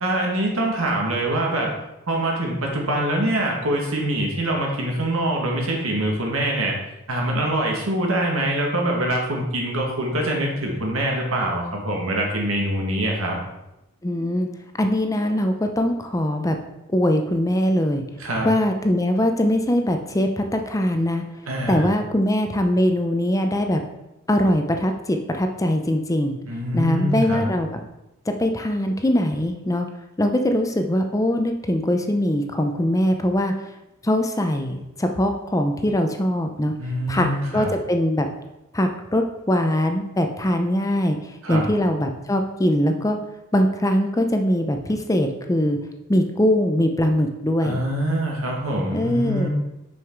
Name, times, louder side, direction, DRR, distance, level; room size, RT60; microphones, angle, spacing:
voice 1, 0.0-1.7 2.1-6.8 7.1-13.4 18.2-18.5 21.5-21.9 26.5-27.5 36.8-37.7 41.4-41.7 47.6-49.5, right 1 dB, 80° right, 0 dB, 1.8 m, -24 dB
voice 2, 14.0-14.5 14.8-16.6 16.9-18.0 18.4-21.2 21.7-23.8 24.3-26.4 26.7-27.8 28.3-29.9 30.2-33.5 34.0-36.7 37.1-37.3 37.5-38.3 38.7-41.2 41.5-43.2 43.5-45.8 46.1-47.8 48.9-49.5, left 1 dB, 15° left, 5 dB, 0.5 m, -21 dB
6.3 x 5.6 x 4.6 m, 0.93 s
head